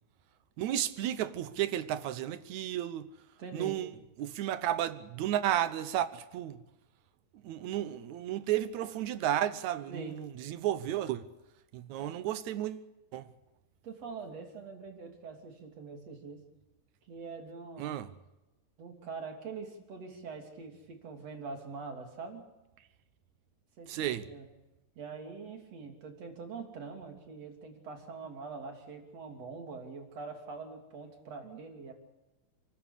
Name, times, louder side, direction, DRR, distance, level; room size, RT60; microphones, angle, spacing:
voice 1, 0.6-3.1 3.5-6.6 7.3-11.3 11.7-13.3 17.8-18.1 23.9-24.3, right 12 dB, 70° right, 2.1 m, -33 dB
voice 2, 3.4-3.8 9.9-10.2 12.0-12.1 13.8-16.4 17.1-18.0 18.8-22.5 23.8-24.5 25.0-31.9, right 4 dB, 50° right, 4.0 m, -44 dB
29.5 x 14.5 x 8.4 m
omnidirectional pair, 3.8 m